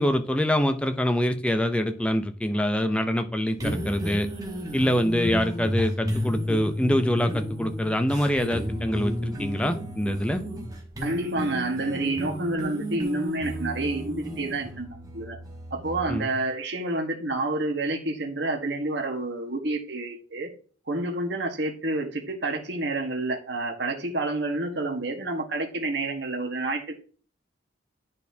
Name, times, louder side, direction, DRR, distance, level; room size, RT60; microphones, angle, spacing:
voice 1, 0.0-4.3 4.7-10.4 16.1-16.3, equal, 5° left, 7 dB, 0.5 m, -25 dB
sound 1, 3.5-16.2, equal, 20° right, 1.2 m, -32 dB
voice 2, 11.0-15.4 15.7-20.5 20.9-27.0, right 2 dB, 65° right, 3 dB, 1.3 m, -29 dB
10.5 x 4.2 x 2.7 m, 0.41 s
head